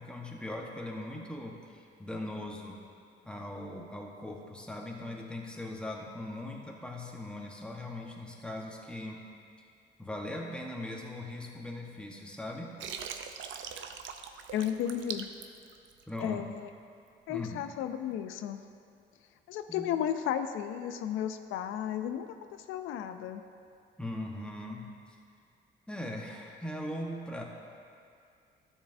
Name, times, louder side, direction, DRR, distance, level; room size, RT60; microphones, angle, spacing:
voice 1, 0.0-2.8 3.2-9.2 10.0-12.7 16.1-16.6 17.3-17.6 19.7-19.9 24.0-24.9 25.9-27.4, left 1 dB, 5° left, -1 dB, 1.1 m, -40 dB
Water, 12.8-16.3, right 7 dB, 70° right, 0.6 m, -41 dB
voice 2, 14.5-15.3 16.2-16.7 17.3-18.6 19.5-23.4, left 10 dB, 90° left, 8 dB, 0.4 m, -34 dB
12.5 x 7.1 x 2.6 m, 2.4 s
cardioid pair, 90°, 20 cm